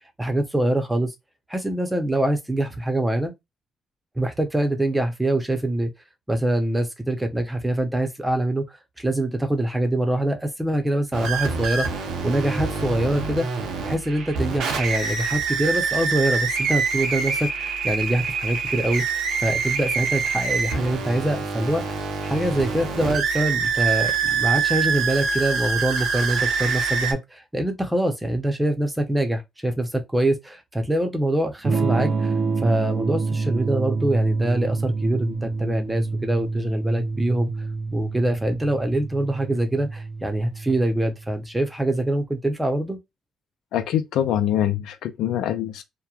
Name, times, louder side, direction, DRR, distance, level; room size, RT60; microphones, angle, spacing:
voice 1, 0.2-1.1 1.5-3.3 4.2-5.9 6.3-8.7 9.0-13.5 13.8-37.5 37.9-43.0, right 1 dB, 10° right, 0.7 m, -24 dB
sound 1, 11.1-27.1, right 5 dB, 85° right, 0.8 m, -25 dB
Electric guitar / Strum, 31.6-41.4, right 4 dB, 45° right, 0.5 m, -27 dB
voice 2, 43.7-45.8, left 11 dB, 85° left, 0.5 m, -24 dB
3.0 x 2.2 x 2.3 m
cardioid pair, 90°, 0 cm